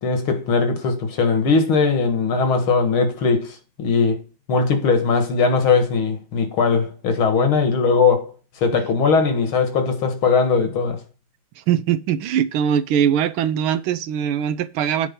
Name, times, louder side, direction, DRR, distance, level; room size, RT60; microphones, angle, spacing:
voice 1, 0.0-4.2 4.5-8.3 8.6-11.0, left 4 dB, 85° left, 2.4 m, -19 dB
voice 2, 11.7-15.1, right 9 dB, 90° right, 1.5 m, -21 dB
8.9 x 4.9 x 5.5 m
omnidirectional pair, 2.2 m